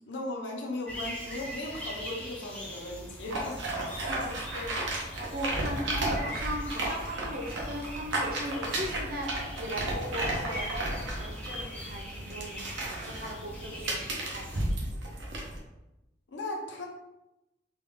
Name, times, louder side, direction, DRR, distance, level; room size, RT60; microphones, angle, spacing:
voice 1, 0.1-3.6 16.3-16.9, left 2 dB, 80° left, 0 dB, 0.7 m, -37 dB
sound 1, 0.9-14.8, equal, 5° left, 0.6 m, -42 dB
sound 2, 3.3-15.6, right 1 dB, 90° right, 0.9 m, -34 dB
voice 2, 4.1-14.9, equal, 55° right, 1 dB, 0.6 m, -38 dB
3.6 x 2.3 x 3.6 m, 0.95 s
head